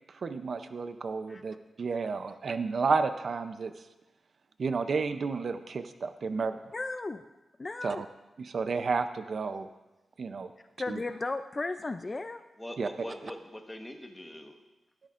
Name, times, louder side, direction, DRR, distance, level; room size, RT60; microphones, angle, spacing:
voice 1, 0.1-3.7 4.6-6.6 7.8-8.1 8.4-9.7 10.2-10.5 10.9-11.0 12.8-13.1, right 4 dB, 55° right, 10 dB, 0.5 m, -31 dB
voice 2, 6.7-7.3 7.6-8.0 10.8-12.4, left 3 dB, 30° left, 9 dB, 0.4 m, -35 dB
voice 3, 12.6-14.6, left 1 dB, 10° left, 4 dB, 1.2 m, -43 dB
14.0 x 13.0 x 2.5 m, 1.0 s
wide cardioid pair, 95°, 0 cm